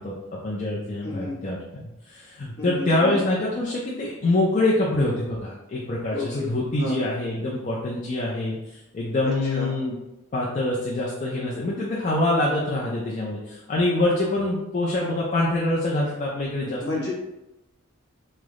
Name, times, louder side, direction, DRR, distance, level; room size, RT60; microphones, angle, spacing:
voice 1, 0.0-1.6 2.1-10.0 10.3-16.8, left 2 dB, 35° left, -5 dB, 0.4 m, -25 dB
voice 2, 1.0-1.4 2.6-3.2 6.1-6.5 6.8-7.0 9.2-9.8 16.6-17.1, left 2 dB, 50° left, -4 dB, 0.9 m, -31 dB
3.2 x 2.0 x 3.5 m, 0.94 s
head